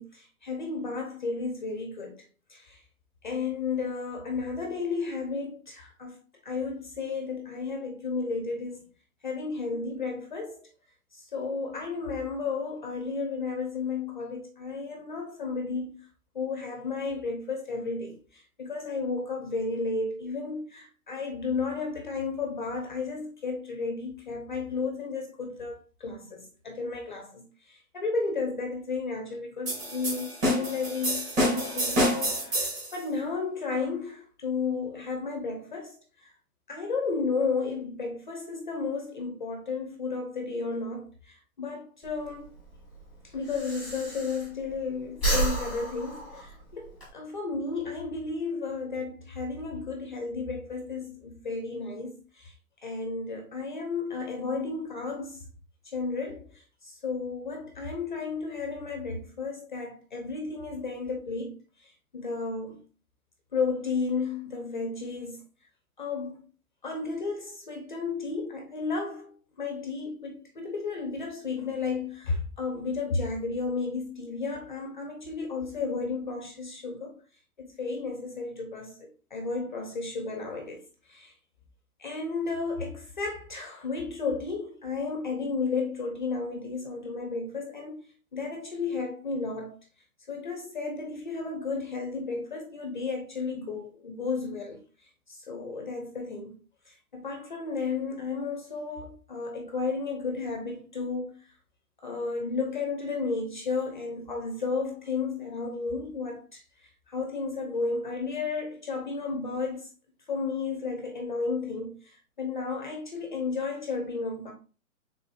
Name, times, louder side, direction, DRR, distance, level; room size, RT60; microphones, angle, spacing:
voice 1, 0.0-2.8 3.2-6.2 6.4-8.9 9.2-10.7 11.1-16.1 16.3-32.7 32.9-36.3 36.7-42.5 43.2-52.5 52.8-55.5 55.8-62.8 63.5-65.4 66.0-66.5 66.8-77.2 77.6-80.8 81.1-81.3 82.0-88.0 88.3-89.7 90.3-94.8 95.3-96.6 96.9-101.4 102.0-109.9 110.3-114.5, left 4 dB, 35° left, 0.5 m, -33 dB
sound 1, 29.7-32.9, equal, 20° right, 1.9 m, -27 dB
Breathing, 42.0-44.8 45.1-47.1, right 2 dB, 5° right, 1.1 m, -31 dB
4.2 x 3.4 x 2.4 m
hypercardioid pair, 160°, 43 cm